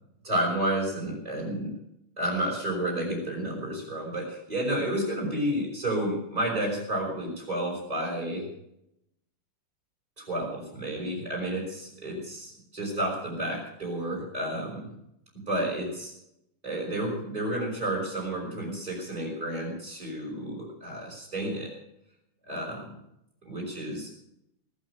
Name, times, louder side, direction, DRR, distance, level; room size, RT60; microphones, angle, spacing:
voice 1, 0.2-1.7 2.2-8.5 10.2-14.9 15.5-16.1 16.6-21.7 22.5-23.0 23.4-24.1, right 1 dB, 20° right, -4 dB, 5.8 m, -31 dB
19.0 x 12.5 x 5.1 m, 0.80 s
omnidirectional pair, 2.1 m